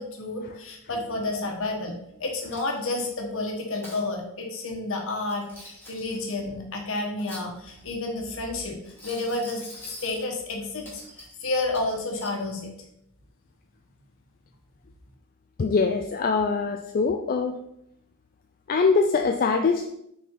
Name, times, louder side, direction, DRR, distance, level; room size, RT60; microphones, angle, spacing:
voice 1, 0.0-12.7, left 2 dB, 65° left, 2 dB, 1.3 m, -31 dB
Coin (dropping), 2.5-3.1 3.6-4.0 5.2-6.3 7.0-7.9 8.8-10.3 10.9-11.4 11.7-12.4, equal, 10° left, 2.4 m, -44 dB
voice 2, 15.6-17.6 18.7-19.9, left 4 dB, 40° left, 5 dB, 0.4 m, -23 dB
6.1 x 4.3 x 3.8 m, 0.78 s
head